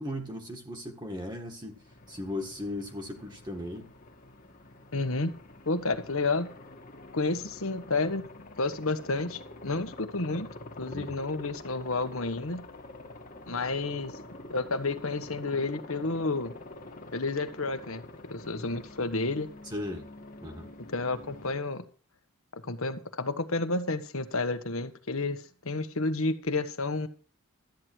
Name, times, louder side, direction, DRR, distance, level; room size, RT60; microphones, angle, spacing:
voice 1, 0.0-3.9 10.9-11.2 19.7-20.1 20.4-20.7, left 1 dB, 20° right, 1.6 m, -37 dB
Aircraft, 1.7-21.5, left 2 dB, 40° left, 1.5 m, -47 dB
voice 2, 4.9-5.3 5.7-6.5 7.1-8.2 8.6-10.5 10.8-12.6 13.5-14.2 14.5-16.5 17.1-18.0 18.3-19.5 20.9-21.8 22.6-27.1, left 3 dB, 70° left, 1.4 m, -30 dB
13.0 x 9.7 x 4.6 m
head